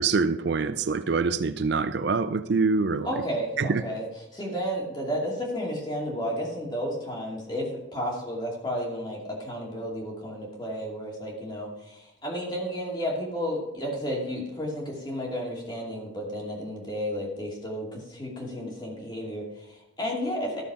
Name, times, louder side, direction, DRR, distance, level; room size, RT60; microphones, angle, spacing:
voice 1, 0.0-3.1 3.6-3.8, right 4 dB, 60° right, 0.4 m, -25 dB
voice 2, 3.0-4.0 4.3-20.6, equal, 25° left, 2.6 m, -32 dB
13.0 x 6.9 x 4.9 m
head